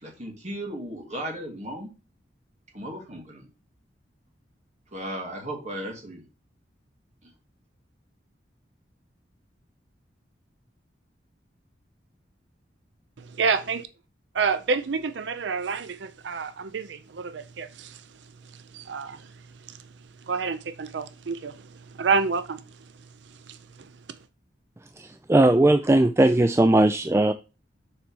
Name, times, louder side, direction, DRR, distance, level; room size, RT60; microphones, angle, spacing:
voice 1, 0.0-1.9 2.7-3.5 4.9-6.2 7.2-7.3, right 1 dB, 40° right, 2.5 m, -36 dB
voice 2, 13.2-13.9 14.3-18.1 18.5-19.3 19.6-19.8 20.3-22.6 23.3-23.9, right 5 dB, 75° right, 0.5 m, -29 dB
voice 3, 25.0-27.3, right 1 dB, 15° right, 0.3 m, -19 dB
6.8 x 4.2 x 6.2 m
head